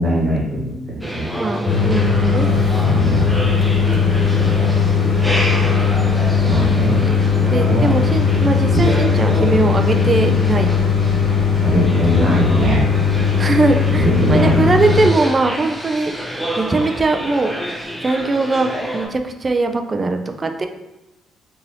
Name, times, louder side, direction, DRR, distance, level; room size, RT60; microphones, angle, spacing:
voice 1, 0.0-1.3 2.9-3.4 6.4-7.0 7.7-7.9 11.6-12.8 14.0-14.7, equal, 50° right, -4 dB, 1.1 m, -20 dB
sound 1, 0.8-10.7, equal, 40° left, 1.4 m, -32 dB
sound 2, 1.0-19.1, right 1 dB, ahead, 0.8 m, -29 dB
voice 2, 1.4-2.5 6.8-6.9 7.3-10.7 13.4-16.1 16.6-17.5 18.0-20.7, right 3 dB, 30° right, 5 dB, 0.3 m, -20 dB
sound 3, 1.7-15.1, left 5 dB, 60° left, 0.5 m, -17 dB
2.9 x 2.6 x 2.7 m, 0.97 s
cardioid pair, 90°, 0 cm